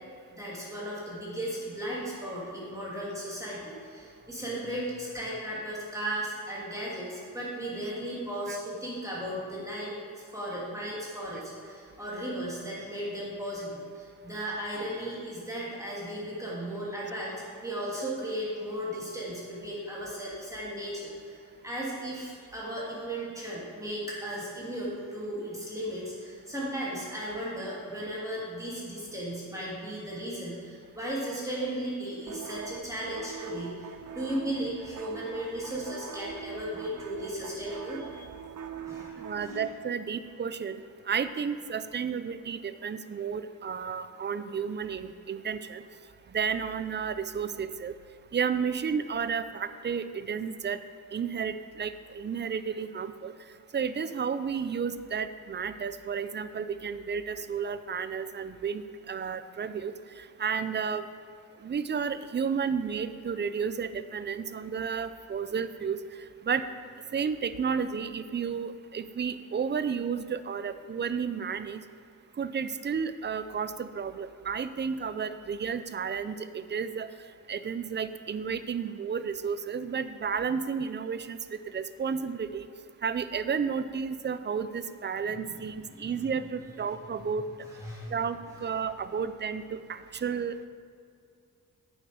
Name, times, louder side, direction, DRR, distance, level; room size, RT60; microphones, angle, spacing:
voice 1, 0.3-10.0 10.3-38.3 38.8-39.6 85.2-85.6 85.9-86.1 87.6-88.1, right 1 dB, 10° right, -7 dB, 2.5 m, -36 dB
sound 1, 32.3-39.5, right 7 dB, 60° right, 0.7 m, -43 dB
voice 2, 39.2-40.8 41.1-45.8 46.3-47.9 48.3-50.8 51.1-53.3 53.7-61.0 61.6-66.0 66.4-66.6 67.1-71.8 72.4-77.1 77.5-81.4 81.7-82.7 83.0-87.5 88.1-90.5, right 6 dB, 30° right, 13 dB, 0.4 m, -32 dB
8.9 x 7.5 x 4.9 m, 2.4 s
cardioid pair, 100°, 35 cm